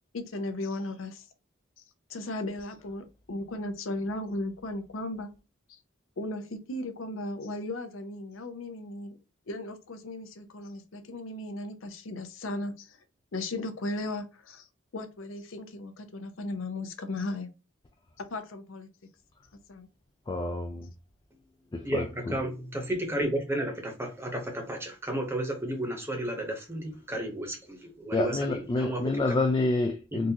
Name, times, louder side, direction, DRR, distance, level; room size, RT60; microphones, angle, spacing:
voice 1, 0.1-1.3 2.1-5.3 5.7-5.8 6.2-9.2 9.5-13.0 13.3-14.7 14.9-17.5 18.2-18.9 19.7-19.9, left 2 dB, 80° left, 0.7 m, -36 dB
voice 2, 20.3-20.9 21.7-22.3 28.1-30.3, left 2 dB, 20° left, 0.3 m, -28 dB
voice 3, 21.8-29.4 30.1-30.2, right 1 dB, 10° right, 0.9 m, -33 dB
3.8 x 2.5 x 2.7 m
head